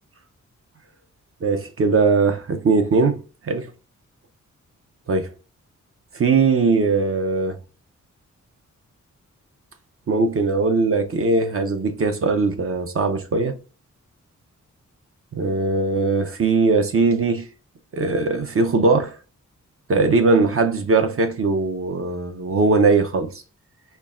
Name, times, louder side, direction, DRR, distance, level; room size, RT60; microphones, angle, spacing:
voice 1, 1.4-3.7 5.1-5.3 6.1-7.6 10.1-13.6 15.3-17.5 17.9-19.2 19.9-23.4, right 3 dB, 45° right, 0.6 m, -20 dB
4.5 x 3.1 x 2.4 m
wide cardioid pair, 130°, 30 cm